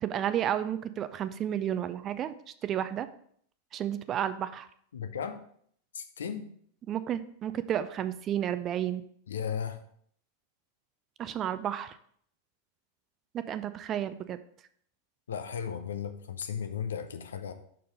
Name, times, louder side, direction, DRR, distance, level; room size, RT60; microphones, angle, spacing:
voice 1, 0.0-2.3 2.6-3.1 3.7-4.7 6.9-9.0 11.2-12.0 13.3-14.4, right 10 dB, 30° right, 13 dB, 0.4 m, -31 dB
voice 2, 4.9-5.4 5.9-6.5 9.3-9.8 15.3-17.5, left 7 dB, 65° left, 8 dB, 0.6 m, -35 dB
6.5 x 4.4 x 5.0 m, 0.63 s
figure-of-eight pair, 90°, 0 cm